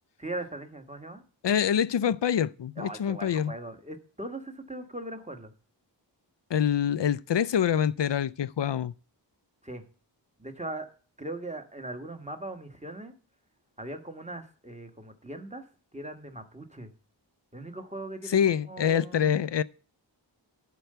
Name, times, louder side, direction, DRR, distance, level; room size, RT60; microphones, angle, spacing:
voice 1, 0.2-1.2 2.8-5.5 9.6-9.8 10.4-10.9 11.2-13.1 13.8-15.6 15.9-16.9 17.5-18.4 18.7-19.4, right 2 dB, 15° right, 1.5 m, -39 dB
voice 2, 1.4-3.5 6.5-8.9 18.3-19.6, left 8 dB, 65° left, 0.5 m, -25 dB
11.5 x 4.6 x 6.6 m
wide cardioid pair, 40°, 45 cm